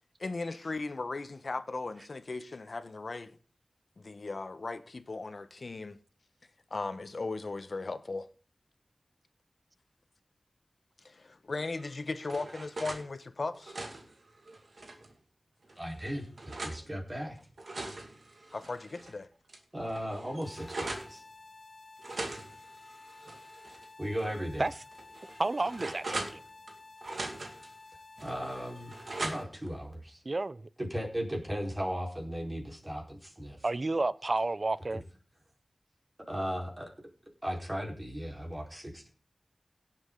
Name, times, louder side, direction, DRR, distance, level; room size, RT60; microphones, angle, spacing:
voice 1, 0.2-3.3 4.0-6.0 6.7-8.3 11.0-13.8 18.5-19.3, left 3 dB, 70° left, 1.1 m, -37 dB
sound 1, 11.8-13.0 13.5-15.1 15.7-16.8 17.4-19.1 19.5-19.6 19.9-21.1 22.0-23.9 24.2-24.3 24.9-26.7 27.0-27.7 28.2-29.7, right 2 dB, 75° right, 2.2 m, -41 dB
voice 2, 15.8-17.4 19.7-21.2 24.0-24.7 28.2-28.9 29.2-30.2 30.8-33.7 36.3-36.9 37.4-39.1, equal, 30° right, 4.4 m, -36 dB
sound 2, 20.4-29.4, left 3 dB, 50° left, 1.7 m, -52 dB
voice 3, 25.4-26.4 30.2-30.7 33.6-35.0, right 2 dB, 55° right, 0.6 m, -31 dB
17.5 x 8.0 x 3.9 m
cardioid pair, 45°, 0 cm